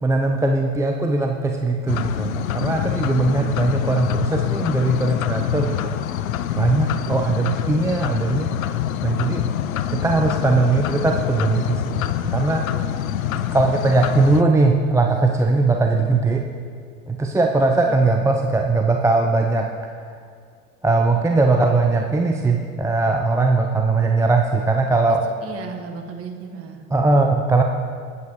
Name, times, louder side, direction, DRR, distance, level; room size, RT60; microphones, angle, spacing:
voice 1, 0.0-5.9 6.5-8.5 9.0-9.5 9.9-12.7 13.5-16.5 17.1-19.7 20.0-20.1 20.8-25.2 26.9-27.6, right 3 dB, 5° right, 2 dB, 0.6 m, -20 dB
sound 1, 1.9-14.4, left 10 dB, 75° left, 0.6 m, -25 dB
voice 2, 4.9-5.5 17.7-18.0 25.4-27.2, right 5 dB, 35° right, 3 dB, 1.4 m, -37 dB
18.5 x 8.5 x 3.1 m, 2.1 s
figure-of-eight pair, 80°, 42 cm